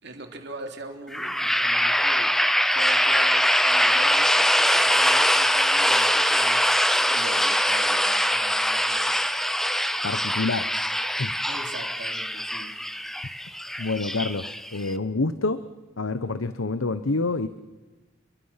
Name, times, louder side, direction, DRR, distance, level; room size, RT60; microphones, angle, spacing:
voice 1, 0.0-9.4 11.5-12.8, right 2 dB, 55° right, 4 dB, 3.3 m, -42 dB
sound 1, 1.1-14.9, equal, ahead, 0.8 m, -23 dB
voice 2, 10.0-10.7 11.2-11.3 13.8-15.6 16.0-17.5, left 3 dB, 80° left, 12 dB, 1.0 m, -27 dB
29.0 x 22.5 x 5.8 m, 1.1 s
head